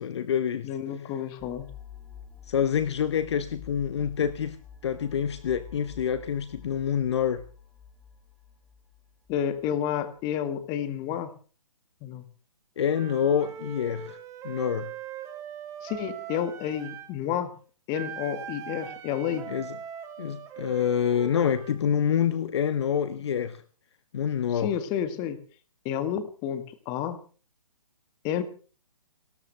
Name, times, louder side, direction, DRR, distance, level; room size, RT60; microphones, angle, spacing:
voice 1, 0.0-0.7 2.5-4.6 4.8-7.4 12.8-14.2 14.4-14.9 19.5-19.7 20.2-23.6 24.1-24.7, left 8 dB, 45° left, 1.0 m, -27 dB
voice 2, 0.6-1.7 9.3-11.3 12.0-12.2 15.8-17.6 17.9-19.5 24.6-25.4 25.8-27.2 28.2-28.4, left 9 dB, 20° left, 1.7 m, -30 dB
sound 1, 1.4-10.0, left 8 dB, ahead, 1.9 m, -48 dB
Wind instrument woodwind instrument, 12.9-17.1 17.9-21.8, right 8 dB, 15° right, 1.8 m, -41 dB
30.0 x 13.0 x 3.4 m
figure-of-eight pair, 140°, 19 cm